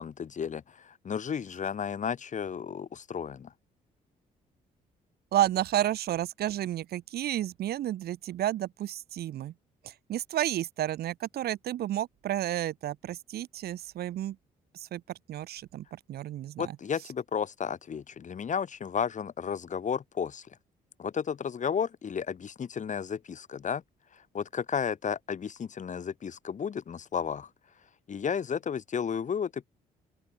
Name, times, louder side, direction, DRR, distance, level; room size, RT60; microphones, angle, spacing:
voice 1, 0.0-3.5 16.6-20.5 21.0-23.8 24.3-27.5 28.1-29.7, left 7 dB, 50° left, 1.9 m, -33 dB
voice 2, 5.3-9.5 9.8-14.4 14.7-15.0 15.3-16.8, right 12 dB, 70° right, 1.3 m, -31 dB
open air
supercardioid pair, 60°, 17 cm